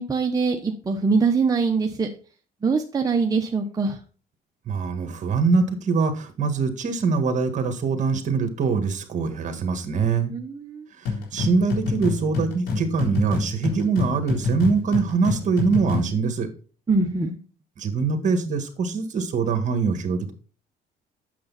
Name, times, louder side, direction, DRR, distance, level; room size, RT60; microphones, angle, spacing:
voice 1, 0.0-2.1 2.6-4.0 10.3-10.8 16.9-17.4, right 4 dB, 20° right, 3 dB, 0.9 m, -23 dB
voice 2, 4.7-10.3 11.3-16.5 17.8-20.3, right 5 dB, 45° right, 7 dB, 1.8 m, -23 dB
sound 1, 11.0-16.2, left 4 dB, 75° left, 3.9 m, -27 dB
8.5 x 7.0 x 4.1 m, 0.39 s
cardioid pair, 110°, 17 cm